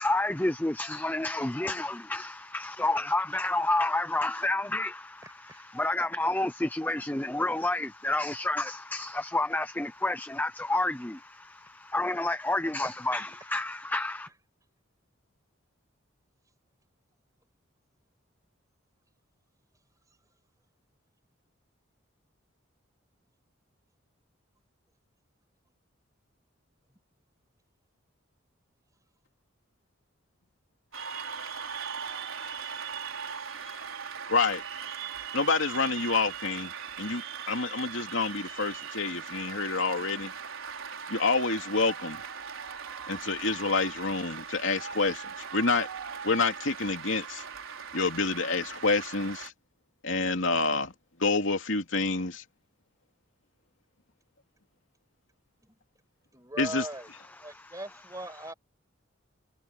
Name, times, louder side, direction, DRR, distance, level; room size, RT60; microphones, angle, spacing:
voice 1, 0.0-14.3 57.4-57.8, left 2 dB, 10° left, 0.6 m, -30 dB
voice 2, 5.2-5.7 12.8-12.9 55.6-55.8 56.3-57.1 57.4-58.5, right 1 dB, 15° right, 6.2 m, -40 dB
Cheering / Applause, 30.9-49.5, right 7 dB, 85° right, 4.6 m, -39 dB
voice 3, 34.3-34.6 35.3-36.7 37.0-40.3 41.1-42.2 43.1-45.9 46.2-47.4 47.9-49.5 50.0-50.9 51.2-52.4 56.6-56.8, left 3 dB, 70° left, 2.8 m, -28 dB
head